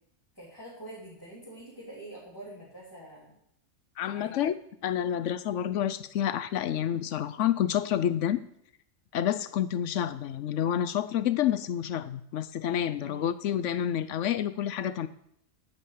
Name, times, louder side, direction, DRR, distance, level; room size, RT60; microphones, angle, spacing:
voice 1, 0.3-3.3 4.0-4.3 13.0-13.3, right 1 dB, 15° left, -7 dB, 3.4 m, -45 dB
voice 2, 4.0-4.5 4.8-8.4 9.1-15.1, left 10 dB, 65° left, 13 dB, 0.9 m, -29 dB
10.0 x 5.5 x 8.3 m, 0.73 s
omnidirectional pair, 1.5 m